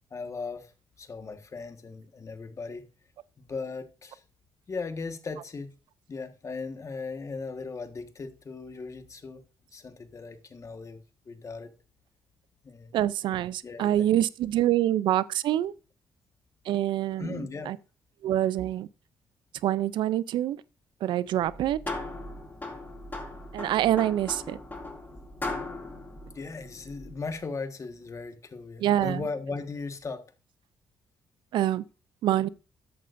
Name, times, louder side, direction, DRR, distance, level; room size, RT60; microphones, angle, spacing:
voice 1, 0.1-0.7 1.0-2.9 3.4-4.2 4.7-5.7 6.1-9.4 9.7-11.7 12.6-13.0 13.6-14.1 17.2-17.7 26.3-30.3, left 4 dB, 40° left, 1.4 m, -37 dB
voice 2, 12.9-15.7 16.7-17.8 18.2-18.9 19.6-20.6 21.0-21.8 23.5-24.6 28.8-29.2 31.5-31.8 32.2-32.5, right 12 dB, 80° right, 0.4 m, -26 dB
sound 1, 21.4-27.3, left 2 dB, 25° left, 4.4 m, -38 dB
13.5 x 8.6 x 2.6 m
cardioid pair, 75°, 8 cm